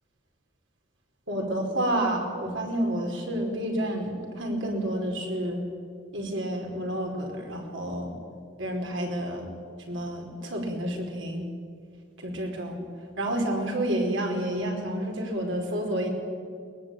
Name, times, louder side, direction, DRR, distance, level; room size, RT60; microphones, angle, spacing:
voice 1, 1.3-5.6 6.1-8.1 8.6-9.5 9.9-11.5 12.2-12.8 13.2-16.1, right 1 dB, 75° right, 1 dB, 4.8 m, -29 dB
22.5 x 20.5 x 9.0 m, 2.2 s
head